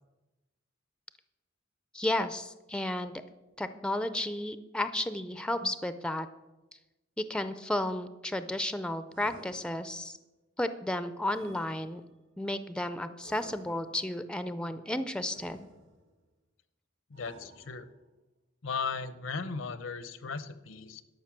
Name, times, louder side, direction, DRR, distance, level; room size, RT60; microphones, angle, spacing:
voice 1, 1.9-3.1 3.6-6.3 7.3-10.2 10.6-12.0 12.4-15.7, left 1 dB, 5° left, 12 dB, 0.4 m, -33 dB
sound 1, 9.1-10.2 11.2-12.3 13.2-14.1 15.3-16.2 17.1-18.1, right 2 dB, 70° right, 1.8 m, -54 dB
voice 2, 17.1-17.9 18.6-21.0, left 5 dB, 75° left, 14 dB, 0.8 m, -36 dB
12.0 x 5.6 x 7.3 m, 1.0 s
head